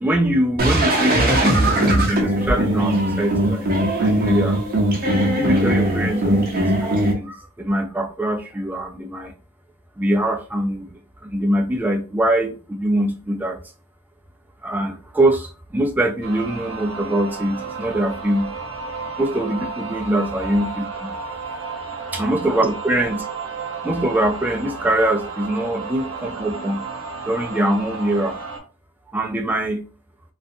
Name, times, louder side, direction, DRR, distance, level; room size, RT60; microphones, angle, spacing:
voice 1, 0.0-3.7 3.9-4.6 5.3-9.3 10.0-10.9 11.2-13.6 14.6-18.5 19.2-21.1 22.1-23.3 23.8-26.9 27.2-28.4 29.1-29.8, right 1 dB, 10° right, 3 dB, 0.3 m, -23 dB
sound 1, 0.6-7.1, right 1 dB, 45° right, 0.6 m, -19 dB
sound 2, 16.2-28.6, right 4 dB, 80° right, 0.7 m, -32 dB
2.4 x 2.2 x 2.6 m, 0.35 s
head